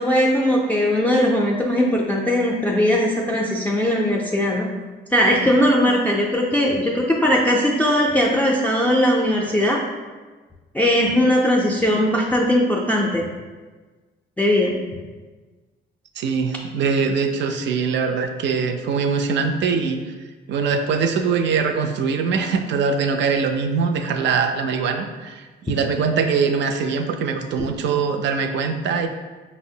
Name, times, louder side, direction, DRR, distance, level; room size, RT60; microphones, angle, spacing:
voice 1, 0.0-4.7 5.1-9.8 10.7-13.2 14.4-14.7, left 1 dB, 10° left, -3 dB, 0.4 m, -19 dB
voice 2, 16.2-20.0 20.5-29.1, right 5 dB, 65° right, 6 dB, 0.4 m, -22 dB
4.9 x 2.0 x 2.7 m, 1.3 s
cardioid pair, 90°, 20 cm